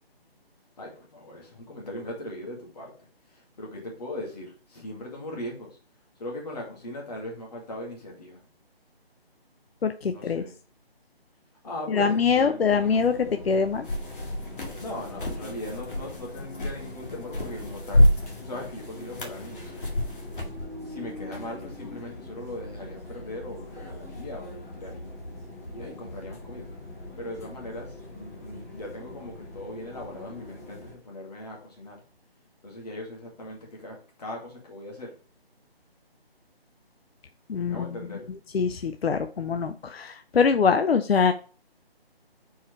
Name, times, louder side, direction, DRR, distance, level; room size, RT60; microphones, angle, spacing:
voice 1, 0.8-2.9 3.3-5.8 6.2-8.4 10.1-10.6 11.6-12.9 14.8-18.0 18.4-20.0 20.8-25.2 25.7-26.7 27.2-32.0 32.6-35.1 37.6-38.3, left 1 dB, 40° left, -1 dB, 2.3 m, -39 dB
voice 2, 9.8-10.4 11.9-13.8 37.5-37.9 38.5-41.3, left 5 dB, 70° left, 8 dB, 0.6 m, -23 dB
sound 1, 12.7-30.9, left 1 dB, 15° left, 0.9 m, -42 dB
sound 2, 13.8-20.6, left 1 dB, 55° left, 2.0 m, -28 dB
4.7 x 4.3 x 4.6 m, 0.39 s
figure-of-eight pair, 165°, 31 cm